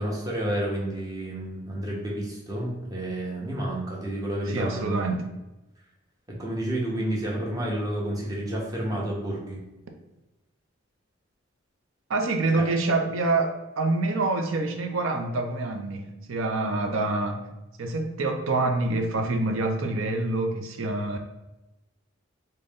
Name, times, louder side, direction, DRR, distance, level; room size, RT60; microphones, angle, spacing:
voice 1, 0.0-5.1 6.4-9.6 12.5-12.6, right 1 dB, 15° right, -4 dB, 0.8 m, -30 dB
voice 2, 4.5-5.3 12.1-17.5 17.8-21.2, right 2 dB, 75° right, 5 dB, 0.5 m, -26 dB
3.9 x 2.2 x 3.5 m, 1.0 s
head